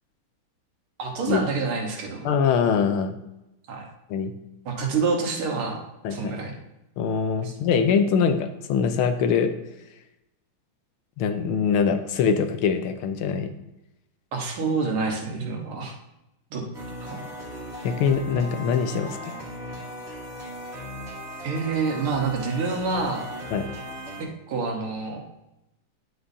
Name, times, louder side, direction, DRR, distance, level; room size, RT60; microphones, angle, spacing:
voice 1, 1.0-2.3 3.7-3.9 4.7-5.8 6.1-6.5 7.4-7.5 14.3-15.9 16.5-16.6 17.1-17.3 21.4-23.3 24.5-25.2, right 4 dB, 75° right, 2 dB, 2.1 m, -27 dB
voice 2, 2.2-3.2 4.1-4.3 6.0-6.4 7.0-9.5 11.2-13.5 17.8-19.2 23.5-23.7, left 6 dB, 85° left, 9 dB, 1.5 m, -23 dB
sound 1, 16.7-24.2, left 1 dB, 35° right, 1.8 m, -37 dB
9.5 x 8.1 x 2.7 m, 0.90 s
omnidirectional pair, 2.3 m